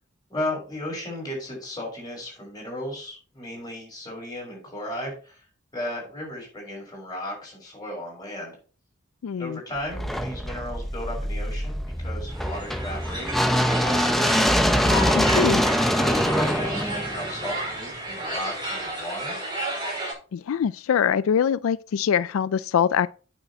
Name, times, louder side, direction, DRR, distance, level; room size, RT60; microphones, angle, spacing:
voice 1, 0.3-5.4 5.7-8.6 9.4-14.5 16.0-19.4, left 1 dB, 20° left, 5.8 m, -35 dB
voice 2, 9.2-9.6 15.1-15.6 20.3-23.1, left 8 dB, 90° left, 0.4 m, -23 dB
sound 1, 9.9-18.0, equal, ahead, 0.8 m, -24 dB
sound 2, 12.3-20.1, equal, 25° right, 5.1 m, -32 dB
8.8 x 6.5 x 4.4 m
head